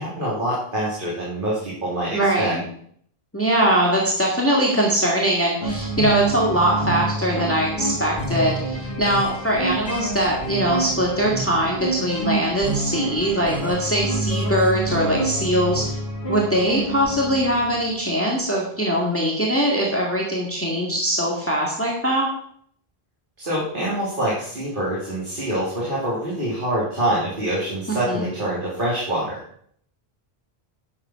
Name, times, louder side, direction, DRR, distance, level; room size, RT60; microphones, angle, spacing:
voice 1, 0.0-2.5 23.4-29.4, right 1 dB, 55° right, -7 dB, 3.1 m, -25 dB
voice 2, 2.1-2.6 3.3-15.9 16.3-22.3 28.1-28.2, right 1 dB, 15° left, -3 dB, 1.9 m, -22 dB
sound 1, 5.6-17.9, right 2 dB, 60° left, 2.7 m, -27 dB
10.5 x 7.4 x 5.7 m, 0.63 s
omnidirectional pair, 1.0 m